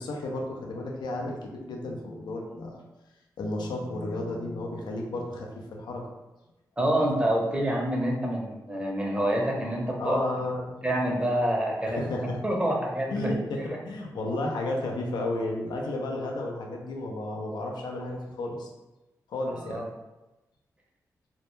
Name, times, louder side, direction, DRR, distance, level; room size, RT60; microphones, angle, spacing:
voice 1, 0.0-2.8 3.4-6.1 10.0-10.8 11.8-12.4 13.1-18.7 19.3-19.9, left 2 dB, 75° left, 0 dB, 0.4 m, -33 dB
voice 2, 6.8-10.2 10.8-12.1 12.4-13.8 19.6-19.8, right 1 dB, 15° right, -1 dB, 0.7 m, -27 dB
2.1 x 2.0 x 3.0 m, 1.0 s
supercardioid pair, 50°, 7 cm